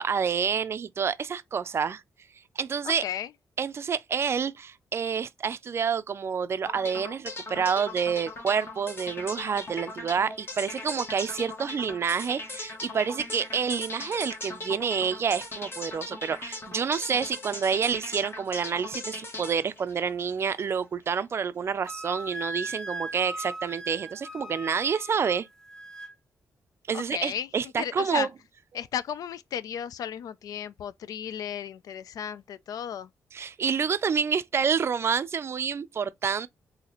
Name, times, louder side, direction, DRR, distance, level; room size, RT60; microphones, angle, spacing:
voice 1, 0.0-2.0 2.6-3.0 3.6-25.5 26.9-28.3 33.3-36.5, right 6 dB, 45° right, 0.4 m, -28 dB
voice 2, 2.8-3.3 26.9-27.5 27.8-28.3 28.7-33.1, left 9 dB, 80° left, 0.3 m, -34 dB
sound 1, 6.7-20.7, left 2 dB, 40° left, 1.2 m, -39 dB
Wind instrument woodwind instrument, 21.8-26.1, right 1 dB, 10° left, 0.6 m, -38 dB
4.0 x 2.7 x 2.9 m
cardioid pair, 115°, 6 cm